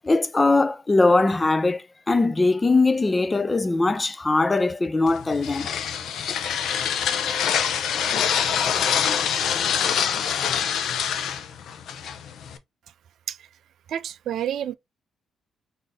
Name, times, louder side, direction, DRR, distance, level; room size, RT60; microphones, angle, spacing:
voice 1, 0.0-5.7, left 3 dB, 20° left, 0.4 m, -21 dB
sound 1, 5.1-12.6, left 8 dB, 70° left, 0.5 m, -25 dB
voice 2, 13.9-14.7, right 10 dB, 70° right, 0.3 m, -29 dB
4.0 x 2.7 x 3.4 m
cardioid pair, 90°, 0 cm